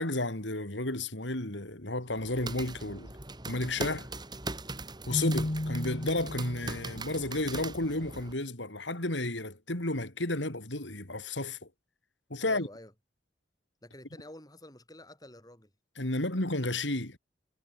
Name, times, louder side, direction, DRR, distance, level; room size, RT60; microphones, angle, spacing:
voice 1, 0.0-3.1 3.5-4.1 5.1-11.6 12.3-12.7 16.0-17.2, left 2 dB, 80° left, 5.2 m, -32 dB
sound 1, 2.1-8.3, right 2 dB, 25° right, 5.5 m, -40 dB
Keyboard (musical), 5.1-7.0, left 1 dB, 35° left, 1.4 m, -34 dB
voice 2, 12.4-12.9 13.8-15.7, left 1 dB, 20° left, 7.7 m, -49 dB
head